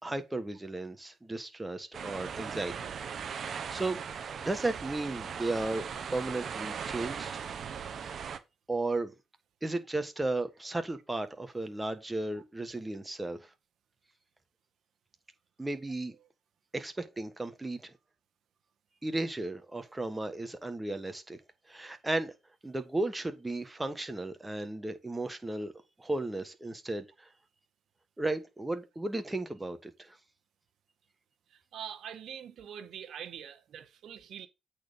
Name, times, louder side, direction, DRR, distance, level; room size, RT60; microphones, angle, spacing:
voice 1, 0.0-2.7 3.2-4.0 4.4-7.4 8.7-9.1 9.6-13.5 15.6-16.2 16.7-17.9 19.0-21.4 21.7-22.3 22.6-25.7 26.0-27.3 28.2-30.2, right 2 dB, 15° right, 1.5 m, -35 dB
sound 1, 1.9-8.4, right 7 dB, 55° right, 1.0 m, -39 dB
voice 2, 31.5-34.5, right 9 dB, 70° right, 1.2 m, -44 dB
8.4 x 4.3 x 5.2 m
cardioid pair, 90°, 0 cm